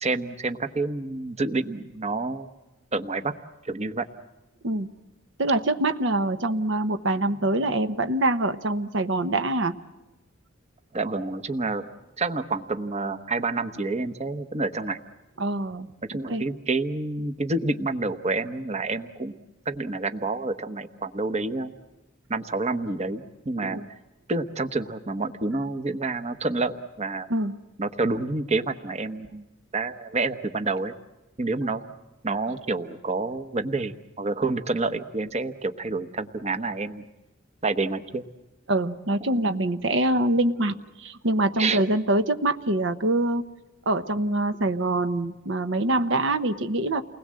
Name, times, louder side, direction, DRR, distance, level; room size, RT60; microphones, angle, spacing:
voice 1, 0.0-2.5 2.9-3.3 3.6-4.1 10.9-11.8 12.2-15.0 16.1-19.3 19.6-21.7 22.3-23.8 24.3-27.3 27.8-29.4 29.7-30.9 31.4-31.8 32.2-37.0 37.6-38.2 41.6-41.8, right 3 dB, 35° right, 9 dB, 1.0 m, -28 dB
voice 2, 5.4-9.7 15.4-15.9 16.3-16.4 23.6-23.9 27.3-27.5 38.7-43.4 43.9-47.0, right 2 dB, 65° right, 9 dB, 1.0 m, -24 dB
29.5 x 20.5 x 7.6 m, 1.1 s
head